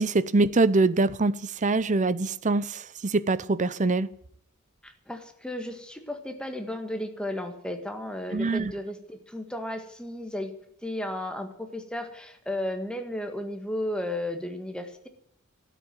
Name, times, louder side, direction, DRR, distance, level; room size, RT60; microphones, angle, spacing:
voice 1, 0.0-4.1 8.3-8.7, right 3 dB, 35° right, 16 dB, 0.7 m, -24 dB
voice 2, 4.8-10.5 10.8-15.1, left 1 dB, 5° left, 5 dB, 1.7 m, -34 dB
12.5 x 9.2 x 9.3 m, 0.71 s
head